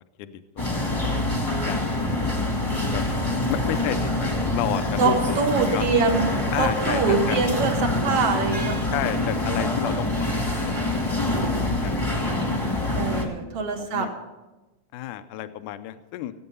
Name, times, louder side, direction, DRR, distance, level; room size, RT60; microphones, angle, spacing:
voice 1, 0.2-1.9 2.4-3.0 3.5-5.9 6.5-7.0 7.3-7.4 8.9-12.2 12.8-13.3 13.8-14.1 14.9-16.3, left 13 dB, 75° left, 11 dB, 2.0 m, -33 dB
sound 1, 0.6-13.3, left 2 dB, 10° left, 1.1 m, -25 dB
voice 2, 5.0-6.3 6.6-8.9 12.9-14.1, right 4 dB, 60° right, 4 dB, 1.7 m, -24 dB
17.0 x 8.7 x 5.4 m, 1.1 s
omnidirectional pair, 4.1 m